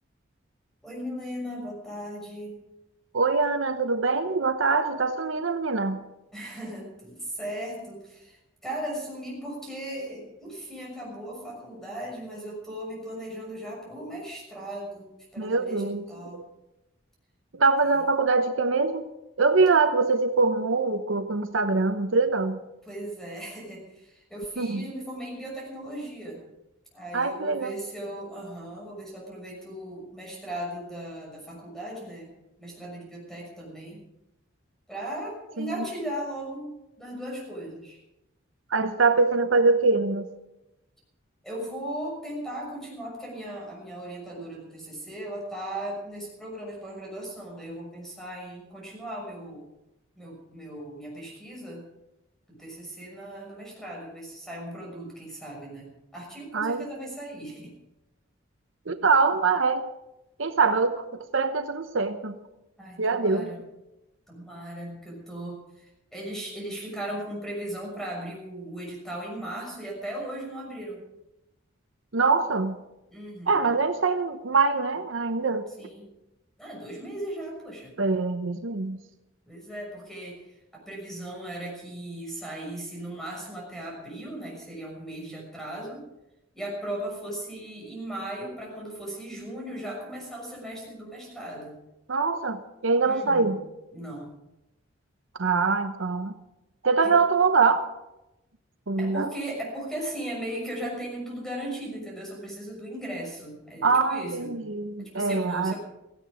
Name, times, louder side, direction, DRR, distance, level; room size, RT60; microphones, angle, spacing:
voice 1, 0.8-2.6 6.3-16.4 22.9-26.4 26.9-32.3 32.6-34.0 34.9-38.0 41.4-49.6 50.2-51.9 52.5-57.8 62.8-63.6 64.3-71.0 73.1-73.7 75.8-76.1 76.6-78.0 79.5-80.4 80.7-86.1 86.5-91.7 93.0-93.6 93.9-94.4 97.0-97.2 99.0-104.6 105.0-105.8, right 1 dB, ahead, -1 dB, 6.2 m, -37 dB
voice 2, 3.1-6.0 15.4-16.0 16.3-16.4 17.5-19.0 19.4-22.6 24.6-24.8 27.1-27.7 35.6-35.7 38.7-40.3 56.5-56.8 58.9-59.9 60.4-62.4 63.0-63.5 72.1-72.8 73.5-75.7 78.0-79.0 92.1-93.6 95.4-96.3 96.8-97.9 98.9-99.3 103.8-105.7, right 4 dB, 70° right, 9 dB, 0.9 m, -24 dB
17.0 x 15.5 x 4.9 m, 0.93 s
head